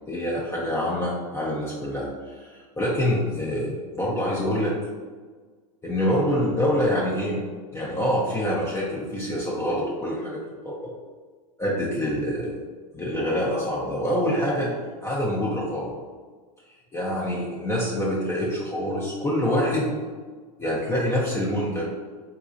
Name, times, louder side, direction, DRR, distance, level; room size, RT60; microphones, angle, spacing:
voice 1, 0.1-4.7 5.8-7.4 7.7-10.9 11.6-12.6 12.9-15.9 16.9-20.0 20.6-22.0, equal, 15° left, -5 dB, 0.5 m, -26 dB
3.9 x 2.3 x 2.5 m, 1.5 s
hypercardioid pair, 110°, 20 cm